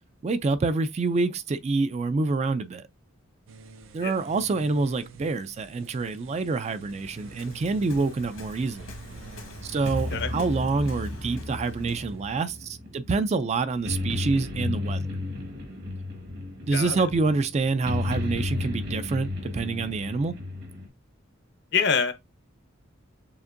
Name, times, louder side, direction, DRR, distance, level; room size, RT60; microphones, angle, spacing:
voice 1, 0.2-2.8 3.9-8.9 9.6-15.1 16.7-20.4, right 3 dB, 35° right, 0.3 m, -27 dB
sound 1, 3.5-12.4, right 5 dB, 90° right, 0.6 m, -47 dB
Waves surf, 6.9-12.1, left 2 dB, 80° left, 1.4 m, -45 dB
sound 2, 9.0-20.9, left 2 dB, 55° right, 1.4 m, -33 dB
voice 2, 16.7-17.0 21.7-22.1, left 6 dB, 60° left, 0.7 m, -25 dB
7.0 x 2.5 x 2.5 m
head